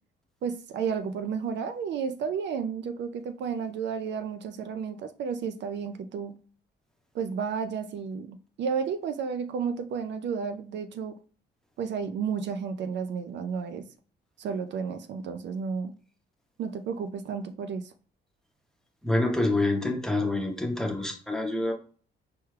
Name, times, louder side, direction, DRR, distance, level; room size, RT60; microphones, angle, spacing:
voice 1, 0.4-6.4 7.1-11.2 11.8-13.9 14.4-16.0 16.6-17.9, right 6 dB, 65° right, 0.4 m, -32 dB
voice 2, 19.0-21.7, left 2 dB, ahead, 0.8 m, -27 dB
4.6 x 2.2 x 3.2 m
cardioid pair, 90°, 20 cm